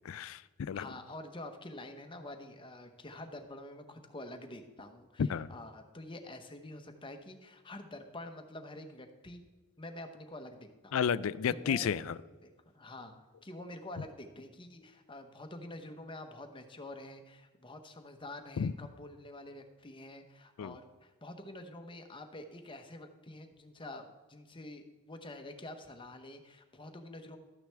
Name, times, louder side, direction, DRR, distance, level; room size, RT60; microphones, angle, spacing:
voice 1, 0.1-0.9 5.2-5.5 10.9-12.2 18.6-18.7 20.6-20.8, left 7 dB, 70° left, 18 dB, 0.4 m, -32 dB
voice 2, 0.7-9.4 9.8-11.0 11.5-12.0 12.4-27.4, left 1 dB, 25° left, 6 dB, 0.9 m, -47 dB
12.5 x 9.3 x 3.4 m, 1.2 s
head